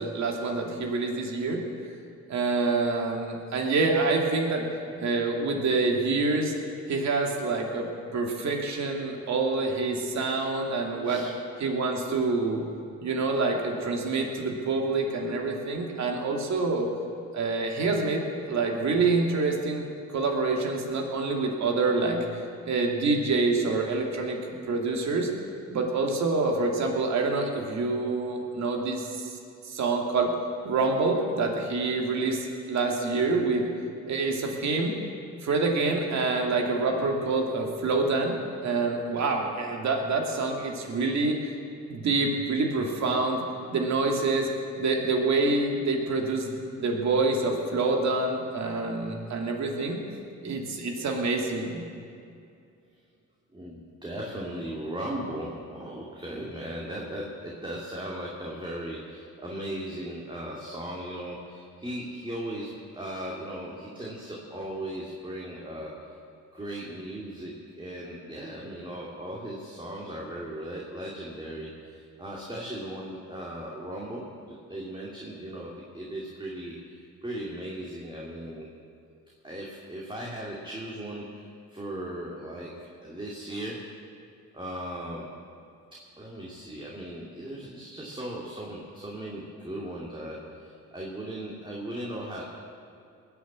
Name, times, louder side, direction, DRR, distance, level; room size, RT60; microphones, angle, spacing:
voice 1, 0.0-1.6 2.3-4.7 5.0-6.5 6.9-11.2 11.6-12.6 13.0-16.9 17.3-19.9 20.1-24.4 24.7-25.3 25.7-29.4 29.6-30.3 30.6-33.7 34.1-34.9 35.4-38.4 38.6-41.5 41.9-43.4 43.7-44.5 44.7-50.0 50.4-51.8, right 3 dB, 65° right, 1 dB, 2.7 m, -27 dB
voice 2, 53.5-65.9 66.5-77.0 77.2-78.7 79.4-83.8 84.5-85.3 86.2-92.4, right 1 dB, 15° right, -4 dB, 2.5 m, -37 dB
20.5 x 7.2 x 8.6 m, 2.5 s
cardioid pair, 90°, 30 cm